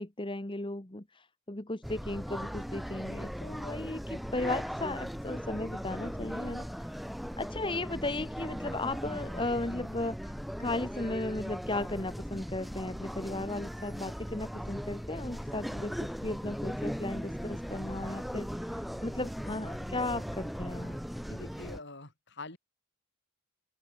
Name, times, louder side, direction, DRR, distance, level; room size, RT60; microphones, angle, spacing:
voice 1, 0.0-6.7 7.4-10.3 10.6-21.0, left 2 dB, 25° left, 1.4 m, -36 dB
sound 1, 1.8-21.8, equal, ahead, 0.8 m, -38 dB
voice 2, 21.3-22.6, left 2 dB, 55° left, 6.7 m, -45 dB
open air
head